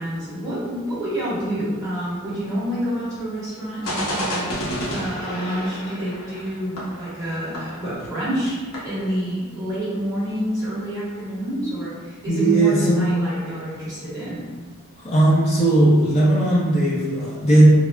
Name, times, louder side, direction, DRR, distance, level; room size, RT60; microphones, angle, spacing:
voice 1, 0.0-4.5 4.9-14.4, equal, 15° right, -11 dB, 1.5 m, -28 dB
sound 1, 3.8-8.2 8.5-8.6 8.7-9.0, equal, 65° left, 0.9 m, -30 dB
voice 2, 12.3-13.2 15.0-17.7, right 1 dB, 30° left, -8 dB, 0.6 m, -17 dB
5.3 x 2.1 x 2.4 m, 1.5 s
head